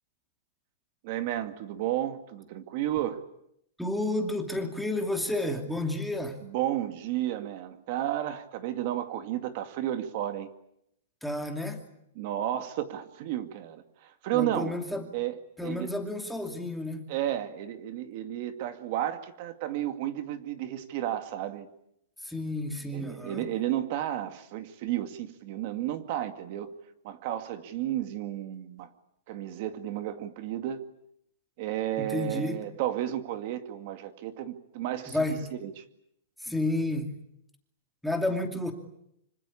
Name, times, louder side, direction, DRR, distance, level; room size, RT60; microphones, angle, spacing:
voice 1, 1.0-3.2 6.4-10.5 12.2-14.7 15.1-15.3 15.6-15.9 17.1-21.7 22.9-26.7 27.0-28.9 29.3-30.8 31.6-35.2 35.6-35.7, right 12 dB, 40° right, 9 dB, 2.2 m, -32 dB
voice 2, 3.8-6.4 11.2-11.8 14.3-15.1 15.6-17.1 22.2-23.5 32.0-32.6 35.1-35.5 36.4-37.1 38.0-38.7, left 1 dB, ahead, 3 dB, 2.7 m, -31 dB
26.0 x 25.5 x 8.6 m, 0.78 s
supercardioid pair, 170°, 0 cm